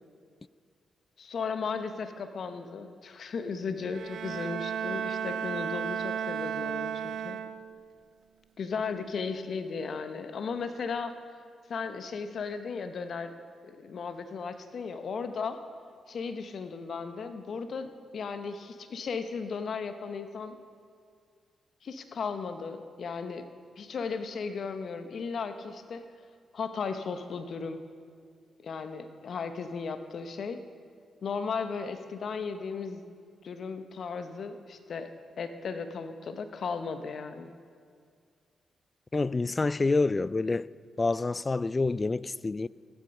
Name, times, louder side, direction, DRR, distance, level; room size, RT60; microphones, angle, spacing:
voice 1, 1.2-7.4 8.6-11.1 11.7-13.3 13.6-15.6 16.1-20.6 21.8-23.4 23.8-26.0 26.5-27.8 28.6-30.6 31.2-33.1 33.4-35.1 35.4-37.5, left 5 dB, 60° left, 1.0 m, -36 dB
Bowed string instrument, 3.8-7.9, right 8 dB, 70° right, 0.4 m, -34 dB
voice 2, 39.1-40.7 41.0-42.7, left 3 dB, 35° left, 0.3 m, -27 dB
14.5 x 11.5 x 5.4 m
hypercardioid pair, 40°, 0 cm